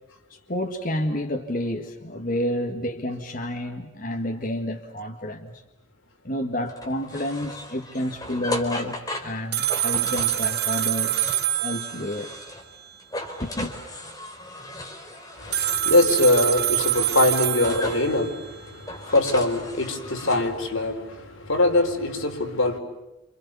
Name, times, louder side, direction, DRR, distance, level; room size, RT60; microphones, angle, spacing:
voice 1, 0.3-5.6 6.2-11.2 11.6-12.3 13.4-13.8, left 1 dB, 40° left, 1.9 m, -30 dB
sound 1, 6.7-12.7 13.0-15.8 16.5-18.1 18.7-20.3, left 1 dB, 15° left, 4.2 m, -36 dB
sound 2, 9.5-12.4 15.5-18.4, right 12 dB, 50° right, 1.2 m, -25 dB
voice 2, 15.4-22.8, left 2 dB, 75° left, 4.4 m, -23 dB
29.5 x 28.5 x 7.0 m
head